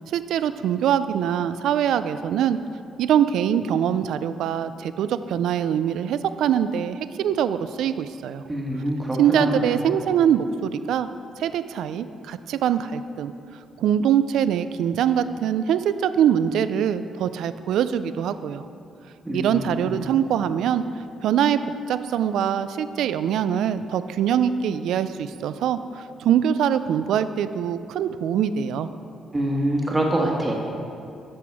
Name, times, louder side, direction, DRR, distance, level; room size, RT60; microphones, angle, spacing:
voice 1, 0.1-2.6 3.0-8.4 9.2-11.1 11.4-13.3 13.8-18.7 19.3-20.8 21.2-21.6 21.9-28.9, right 9 dB, 80° right, 12 dB, 0.3 m, -23 dB
voice 2, 8.5-9.7 19.2-20.0 29.3-30.5, right 1 dB, 15° right, -2 dB, 1.5 m, -25 dB
11.5 x 6.1 x 4.7 m, 2.5 s
cardioid pair, 90°, 0 cm